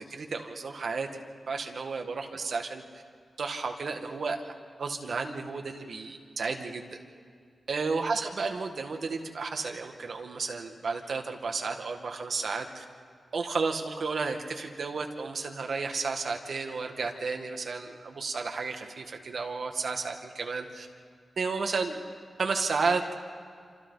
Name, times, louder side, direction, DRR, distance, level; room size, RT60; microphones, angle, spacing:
voice 1, 0.0-3.0 3.4-4.4 4.8-7.0 7.7-12.8 13.3-20.9 21.4-22.0 22.4-23.0, right 4 dB, 60° right, 3 dB, 1.8 m, -32 dB
27.0 x 27.0 x 4.1 m, 2.1 s
wide cardioid pair, 175°, 0 cm